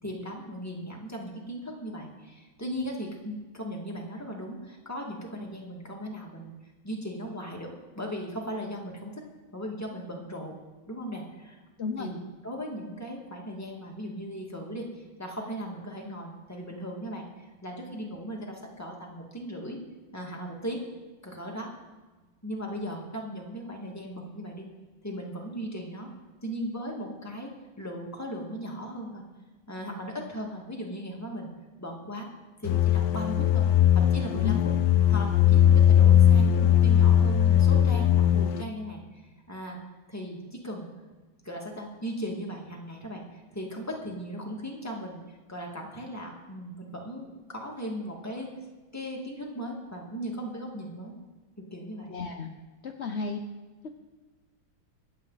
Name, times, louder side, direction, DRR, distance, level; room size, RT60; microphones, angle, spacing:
voice 1, 0.0-6.5 6.8-9.2 9.5-10.5 10.9-11.6 12.0-19.8 20.1-20.8 21.2-21.7 22.4-24.7 25.0-26.1 26.4-29.2 29.7-31.5 31.8-32.3 32.6-33.7 33.9-34.7 35.1-39.8 40.1-40.9 41.4-48.5 48.9-51.2 51.6-52.1, equal, 10° left, -1 dB, 2.0 m, -37 dB
voice 2, 11.8-12.1 34.4-34.6 52.1-52.5 52.8-53.4 53.8-53.9, left 5 dB, 55° left, 4 dB, 0.7 m, -33 dB
sound 1, 32.6-38.6, left 10 dB, 75° left, 1.2 m, -20 dB
24.5 x 8.7 x 4.1 m, 1.2 s
omnidirectional pair, 2.2 m